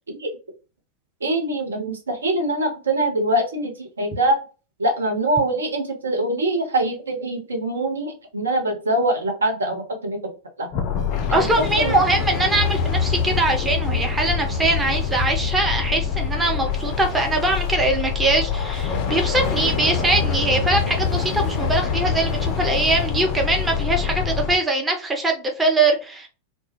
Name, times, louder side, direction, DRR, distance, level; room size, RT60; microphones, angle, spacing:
voice 1, 1.2-4.4 4.8-10.2 10.6-10.7 11.3-11.5 11.8-12.0, right 1 dB, 75° right, 0.7 m, -23 dB
sound 1, 10.7-24.6, left 6 dB, 40° left, 0.3 m, -25 dB
voice 2, 11.3-26.3, right 2 dB, 10° right, 0.6 m, -22 dB
2.2 x 2.1 x 3.0 m
figure-of-eight pair, 90°, 0 cm